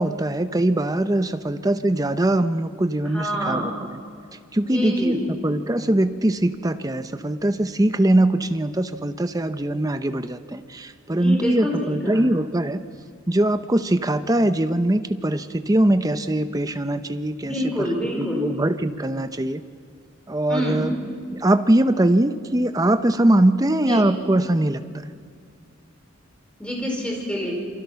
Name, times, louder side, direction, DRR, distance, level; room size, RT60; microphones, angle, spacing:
voice 1, 0.0-3.6 4.5-5.2 5.4-12.8 13.3-17.9 18.2-19.6 20.3-20.9 21.3-24.8, right 1 dB, 15° right, 10 dB, 0.7 m, -21 dB
voice 2, 3.0-3.7 4.6-5.3 11.1-12.3 17.4-18.5 20.5-20.9 23.8-24.1 26.6-27.5, equal, 5° left, -1 dB, 4.9 m, -27 dB
28.0 x 23.0 x 5.8 m, 2.2 s
head